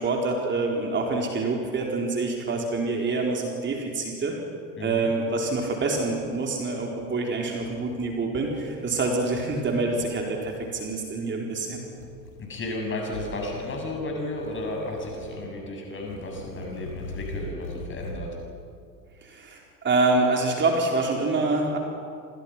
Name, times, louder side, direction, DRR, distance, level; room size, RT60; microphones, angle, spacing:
voice 1, 0.0-4.4 4.8-11.8 19.2-21.8, right 3 dB, 20° right, 0 dB, 4.3 m, -26 dB
sound 1, 4.7-4.8 5.1-6.3 6.6-7.1 7.5-8.1 8.4-10.1 10.4-10.9 11.9-12.7 13.1-14.0 14.4-15.6 16.0-18.3, left 2 dB, 75° left, 3.8 m, -42 dB
voice 2, 4.8-5.1 12.4-18.3, left 2 dB, 25° left, 1 dB, 7.6 m, -33 dB
28.5 x 27.5 x 6.1 m, 2.3 s
figure-of-eight pair, 80°, 49 cm